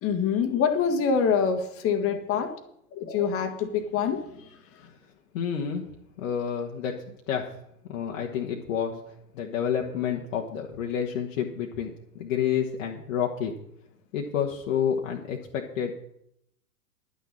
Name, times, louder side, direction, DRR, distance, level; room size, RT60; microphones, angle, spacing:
voice 1, 0.0-2.5 2.9-4.5, left 6 dB, 30° left, 7 dB, 1.7 m, -25 dB
voice 2, 5.3-5.8 6.2-7.5 7.9-9.0 9.3-13.5 14.1-15.9, left 8 dB, 55° left, 0 dB, 1.5 m, -29 dB
11.0 x 6.5 x 8.7 m, 0.77 s
figure-of-eight pair, 105°, 47 cm